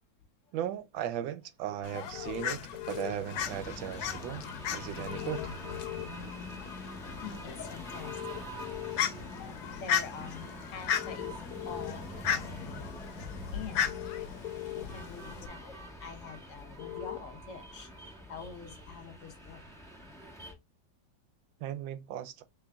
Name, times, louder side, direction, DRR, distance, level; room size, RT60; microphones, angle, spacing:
voice 1, 0.5-2.6 2.9-4.4 4.7-5.4 21.6-22.4, right 10 dB, 85° right, 1.3 m, -37 dB
Fowl, 1.8-15.5, left 8 dB, 90° left, 1.4 m, -37 dB
sound 1, 2.1-3.1 5.1-6.0 8.0-9.0 10.9-11.9 13.9-14.8 16.8-17.2, left 16 dB, 75° left, 0.7 m, -40 dB
sound 2, 3.3-20.5, right 1 dB, ahead, 0.8 m, -46 dB
voice 2, 4.9-5.6 7.2-8.2 9.4-13.0 13.5-14.1 14.7-19.7, left 6 dB, 55° left, 1.0 m, -46 dB
6.0 x 3.3 x 2.3 m
omnidirectional pair, 2.1 m